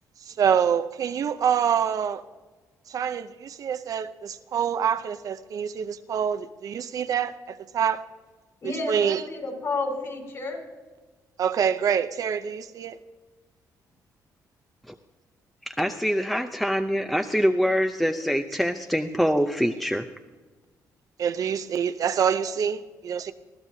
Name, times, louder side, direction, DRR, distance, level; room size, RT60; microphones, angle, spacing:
voice 1, 0.3-2.2 2.9-8.0 8.6-9.2 11.4-13.0 21.2-23.3, right 8 dB, 55° right, 0.6 m, -26 dB
voice 2, 8.6-10.6, left 3 dB, 50° left, 5.1 m, -31 dB
voice 3, 15.7-20.0, equal, ahead, 0.6 m, -24 dB
20.0 x 14.5 x 2.8 m
cardioid pair, 100°, 7 cm